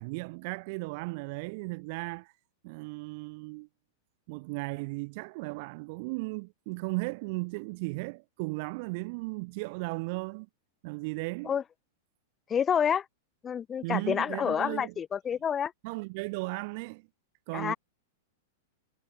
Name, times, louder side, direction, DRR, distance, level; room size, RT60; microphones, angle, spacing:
voice 1, 0.0-2.3 2.6-3.7 4.3-10.5 10.8-11.5 13.8-14.9 15.8-17.1 17.5-17.7, right 28 dB, 55° right, 2.0 m, -36 dB
voice 2, 12.5-13.1 13.4-15.7 17.5-17.8, left 8 dB, 25° left, 2.9 m, -28 dB
hypercardioid pair, 115°, 0 cm